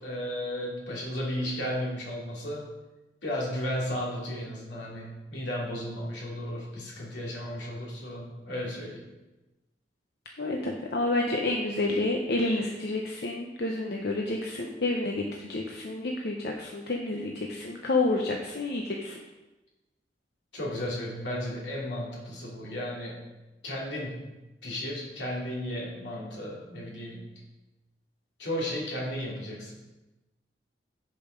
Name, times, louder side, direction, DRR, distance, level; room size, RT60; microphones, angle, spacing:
voice 1, 0.0-2.6 3.2-9.0 20.5-23.2 23.6-24.3 24.6-27.3 28.4-29.7, equal, 85° left, -3 dB, 2.8 m, -34 dB
voice 2, 10.4-19.2, left 2 dB, 65° left, 1 dB, 0.8 m, -29 dB
7.8 x 7.1 x 5.1 m, 1.1 s
head